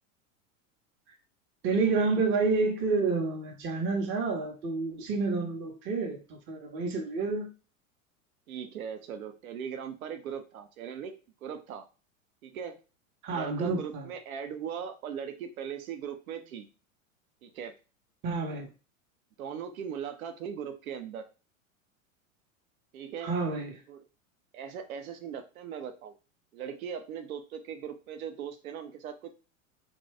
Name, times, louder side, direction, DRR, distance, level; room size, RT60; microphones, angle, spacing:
voice 1, 1.6-7.5 13.2-14.1 18.2-18.7 23.2-23.8, right 4 dB, 30° right, 0.6 m, -29 dB
voice 2, 8.5-11.1 11.4-11.9 12.4-12.8 13.3-16.7 17.4-17.7 19.4-21.3 22.9-23.3 23.9-24.0 24.5-26.1 26.5-29.3, right 8 dB, 90° right, 0.6 m, -39 dB
2.6 x 2.2 x 3.2 m
hypercardioid pair, 105°, 41 cm